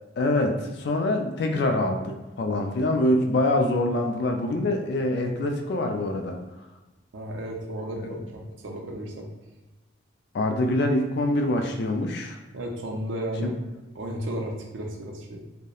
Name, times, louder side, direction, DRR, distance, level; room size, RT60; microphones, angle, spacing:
voice 1, 0.2-6.4 7.8-8.2 10.3-12.4 13.4-13.5, left 1 dB, 55° left, 4 dB, 0.3 m, -25 dB
voice 2, 7.1-9.3 12.5-13.5 13.9-15.4, right 1 dB, 70° right, 1 dB, 0.5 m, -33 dB
2.8 x 2.0 x 2.3 m, 1.1 s
head